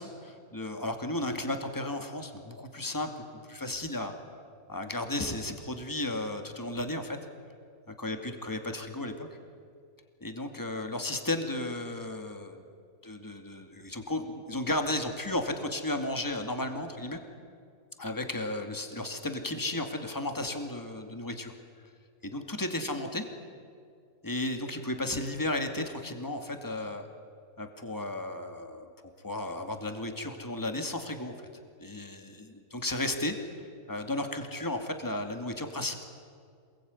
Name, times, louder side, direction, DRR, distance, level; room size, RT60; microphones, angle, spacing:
voice 1, 0.0-3.1 3.4-4.1 4.7-7.2 7.9-9.3 10.2-12.6 13.0-17.2 18.0-21.5 22.2-23.2 24.2-27.1 27.6-28.9 29.2-31.5 31.8-33.5 33.9-36.0, left 1 dB, 15° left, 5 dB, 2.4 m, -34 dB
27.5 x 22.0 x 9.7 m, 2.2 s
omnidirectional pair, 1.3 m